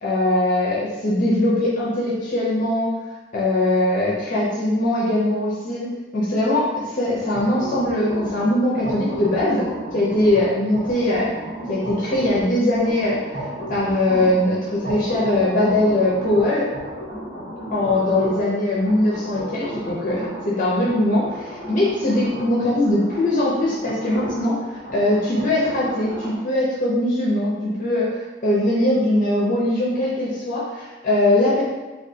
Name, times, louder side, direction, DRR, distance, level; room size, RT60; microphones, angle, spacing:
voice 1, 0.0-2.9 3.3-9.6 9.9-11.3 11.7-13.4 13.7-16.7 17.7-31.6, left 1 dB, 45° left, -6 dB, 0.6 m, -21 dB
sound 1, 7.1-26.4, equal, 55° right, 1.3 m, -34 dB
3.4 x 2.3 x 2.7 m, 1.2 s
head